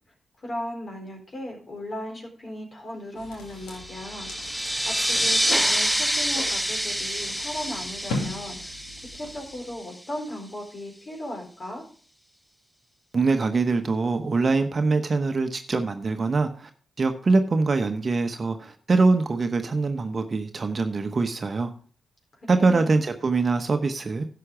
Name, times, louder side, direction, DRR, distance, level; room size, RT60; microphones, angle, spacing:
voice 1, 0.4-4.3 4.9-8.8 9.1-11.8 22.4-22.9, left 1 dB, 45° left, 1 dB, 4.1 m, -37 dB
sound 1, 3.2-9.8, left 2 dB, 85° left, 2.1 m, -39 dB
sound 2, 3.7-9.9, equal, ahead, 0.6 m, -27 dB
voice 2, 13.1-16.7 17.0-21.7 22.5-24.3, right 3 dB, 45° right, 7 dB, 1.0 m, -23 dB
11.5 x 6.9 x 5.0 m, 0.42 s
hypercardioid pair, 40°, 0 cm